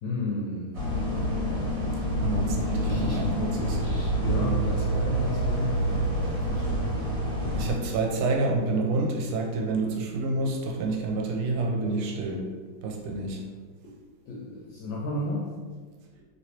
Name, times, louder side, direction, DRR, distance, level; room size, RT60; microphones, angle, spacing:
voice 1, 0.0-0.8 2.8-3.2 3.7-6.9 12.8-12.9 13.8-13.9 14.3-15.5, left 2 dB, 75° left, -5 dB, 1.2 m, -34 dB
sound 1, 0.7-7.7, equal, 65° right, 1.6 m, -27 dB
voice 2, 2.2-3.8 4.4-4.7 5.8-6.3 7.5-12.5 12.8-13.4, right 3 dB, 85° right, 0 dB, 1.5 m, -28 dB
3.2 x 3.1 x 2.7 m, 1.5 s
omnidirectional pair, 2.3 m